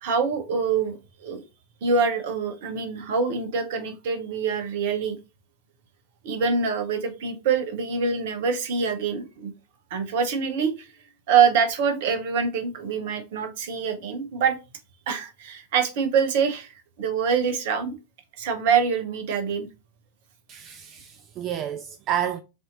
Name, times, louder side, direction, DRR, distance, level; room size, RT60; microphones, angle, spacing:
voice 1, 0.0-1.4 1.8-5.2 6.2-9.5 9.9-10.9 11.3-14.6 15.1-18.0 18.4-19.7, right 6 dB, 50° right, 1.0 m, -25 dB
voice 2, 20.5-22.4, right 10 dB, 35° right, 0.3 m, -30 dB
6.0 x 2.8 x 2.6 m
figure-of-eight pair, 90°, 0 cm